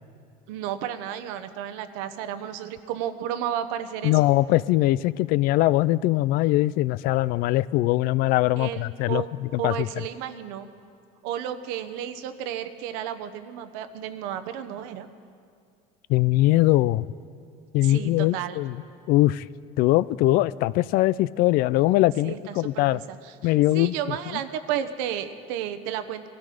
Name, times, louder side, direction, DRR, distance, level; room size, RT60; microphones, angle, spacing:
voice 1, 0.5-4.1 8.6-9.3 9.6-10.7 11.2-15.1 17.8-18.6 22.2-26.3, right 10 dB, 80° right, 9 dB, 1.0 m, -32 dB
voice 2, 4.0-9.9 16.1-17.1 17.7-18.7 19.1-19.4 19.8-23.0 23.4-23.9, left 17 dB, 60° left, 19 dB, 0.4 m, -21 dB
21.5 x 13.0 x 5.1 m, 2.3 s
cardioid pair, 130°, 17 cm